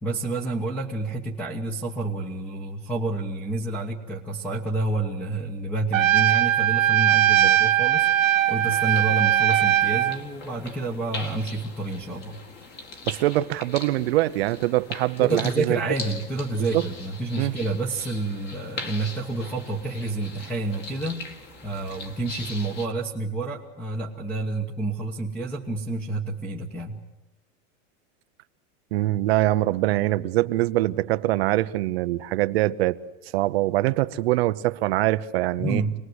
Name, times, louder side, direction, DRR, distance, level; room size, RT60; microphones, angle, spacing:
voice 1, 0.0-8.1 8.5-12.4 15.2-21.2 21.6-27.0 35.6-35.9, right 2 dB, 5° left, 1.2 m, -29 dB
Trumpet, 5.9-10.2, right 12 dB, 85° right, 1.7 m, -20 dB
sound 1, 8.0-22.9, left 3 dB, 25° left, 2.0 m, -41 dB
voice 2, 13.1-15.8 16.6-16.8 17.4-17.5 28.9-33.0 33.3-35.8, right 17 dB, 50° right, 0.8 m, -23 dB
26.5 x 19.5 x 8.0 m
supercardioid pair, 165°, 39 cm